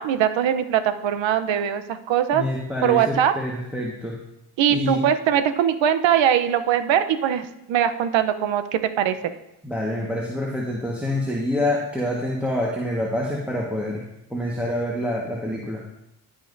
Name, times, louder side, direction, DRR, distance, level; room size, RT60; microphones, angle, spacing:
voice 1, 0.0-2.4 2.8-3.3 4.6-9.3, right 9 dB, 70° right, 10 dB, 0.9 m, -21 dB
voice 2, 2.3-4.1 4.7-5.0 9.6-14.0 14.3-15.8, left 1 dB, 5° right, -3 dB, 1.5 m, -26 dB
15.5 x 5.5 x 2.7 m, 0.84 s
supercardioid pair, 60°, 47 cm